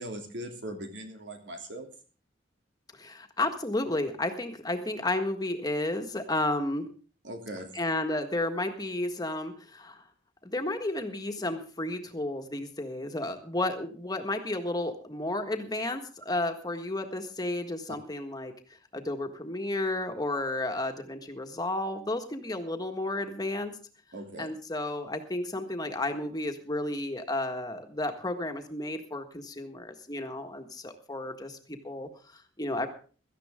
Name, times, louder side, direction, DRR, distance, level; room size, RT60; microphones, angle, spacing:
voice 1, 0.0-1.9 7.2-7.8 17.9-18.0 24.1-24.5, right 1 dB, 75° right, 4 dB, 3.0 m, -40 dB
voice 2, 2.9-6.9 7.7-10.0 10.4-18.5 18.9-23.8 24.4-32.9, left 2 dB, 20° left, 5 dB, 1.6 m, -32 dB
17.0 x 13.5 x 3.7 m, 0.38 s
head